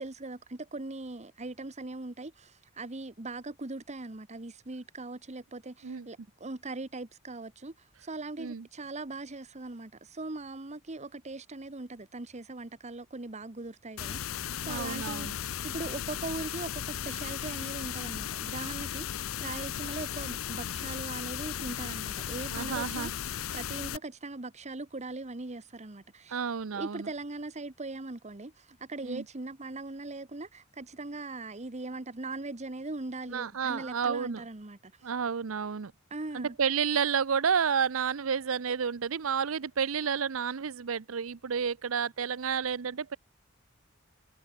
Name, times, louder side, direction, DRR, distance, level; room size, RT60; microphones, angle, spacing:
voice 1, 0.0-26.4 26.7-35.1 36.1-36.6, right 2 dB, 35° right, 1.3 m, -40 dB
sound 1, 14.0-24.0, left 10 dB, 75° left, 0.5 m, -36 dB
voice 2, 14.7-15.3 22.5-23.1 26.3-27.1 29.0-29.2 33.3-34.4 35.0-35.9 36.3-43.2, right 6 dB, 75° right, 0.6 m, -30 dB
head